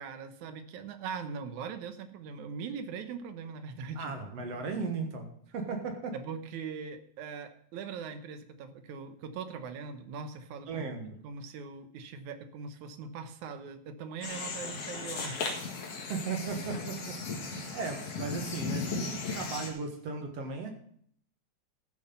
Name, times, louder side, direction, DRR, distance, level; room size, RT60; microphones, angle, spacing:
voice 1, 0.0-4.1 6.1-10.9 11.2-15.4, right 6 dB, 85° right, 9 dB, 2.5 m, -41 dB
voice 2, 4.0-6.1 10.7-11.2 16.1-20.7, right 4 dB, 60° right, 4 dB, 2.6 m, -36 dB
sound 1, 14.2-19.7, left 4 dB, 60° left, 2.8 m, -36 dB
14.0 x 7.5 x 5.5 m, 0.62 s
omnidirectional pair, 3.3 m